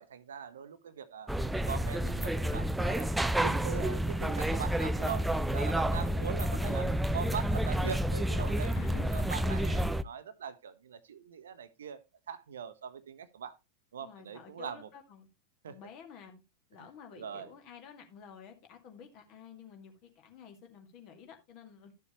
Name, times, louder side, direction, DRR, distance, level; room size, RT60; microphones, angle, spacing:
voice 1, 0.0-1.3 1.7-6.8 7.1-12.0 12.3-13.6 13.9-14.9 15.6-15.8 16.7-16.9 17.1-17.5, right 8 dB, 65° right, 0.9 m, -41 dB
sound 1, 1.3-10.0, right 1 dB, 5° right, 0.5 m, -30 dB
voice 2, 5.4-6.2 6.5-6.9 8.7-9.7 14.0-15.3 15.7-16.4 16.7-21.9, left 7 dB, 40° left, 2.2 m, -51 dB
12.0 x 6.9 x 3.0 m
figure-of-eight pair, 90°, 0 cm